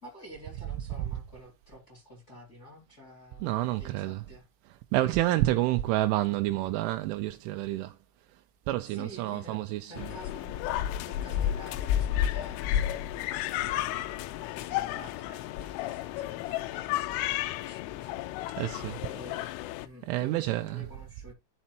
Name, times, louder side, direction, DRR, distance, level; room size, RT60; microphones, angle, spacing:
voice 1, 0.0-4.5 5.4-5.6 8.9-10.7 11.0-18.2 19.0-19.5 19.8-21.3, equal, 20° left, 2.1 m, -50 dB
voice 2, 3.4-4.2 4.9-7.9 8.7-10.1 18.6-19.0 20.1-20.8, right 16 dB, 85° right, 2.9 m, -28 dB
sound 1, 10.0-19.9, left 12 dB, 90° left, 3.2 m, -32 dB
11.0 x 4.2 x 4.4 m
omnidirectional pair, 5.6 m